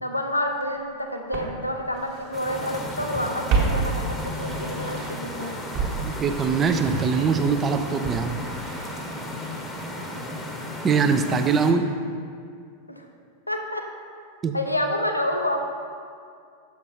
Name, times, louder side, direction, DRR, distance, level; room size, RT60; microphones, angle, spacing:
voice 1, 0.0-5.6 12.9-13.0 13.5-13.9 14.5-15.6, left 1 dB, 85° left, 3 dB, 0.6 m, -28 dB
Walk footsteps, 0.6-0.7 1.3-2.8 3.1-5.3 5.7-9.8 10.0-10.1, right 4 dB, 40° right, 1.4 m, -31 dB
sound 1, 2.3-11.7, left 1 dB, 10° left, 0.9 m, -34 dB
voice 2, 6.0-8.3 10.8-11.9 14.4-14.5, right 5 dB, 25° right, 8 dB, 0.5 m, -22 dB
7.0 x 5.9 x 4.4 m, 2.2 s
figure-of-eight pair, 90°, 0 cm